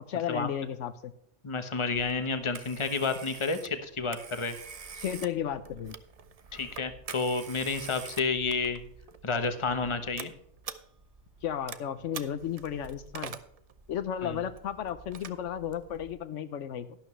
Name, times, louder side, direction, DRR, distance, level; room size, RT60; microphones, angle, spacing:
voice 1, 0.1-1.1 5.0-6.0 11.4-13.4 13.9-17.0, left 9 dB, 75° left, 12 dB, 1.0 m, -34 dB
voice 2, 1.4-4.5 6.5-8.8 9.2-10.3 14.2-14.4, left 4 dB, 25° left, 8 dB, 1.0 m, -30 dB
Telephone, 1.9-16.2, right 6 dB, 40° right, 0.6 m, -46 dB
12.0 x 11.5 x 3.2 m, 0.72 s
omnidirectional pair, 1.3 m